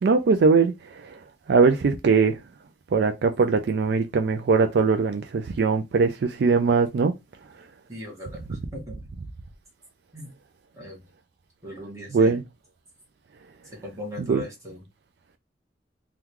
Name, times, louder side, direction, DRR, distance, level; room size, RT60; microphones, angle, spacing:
voice 1, 0.0-1.2 1.5-2.4 2.9-7.1 12.1-12.4 14.2-14.4, right 4 dB, 65° right, 0.4 m, -21 dB
voice 2, 7.9-9.1 10.1-10.3 10.7-11.0 11.6-12.3 13.8-14.8, left 1 dB, 20° right, 1.3 m, -39 dB
3.6 x 2.3 x 2.9 m
head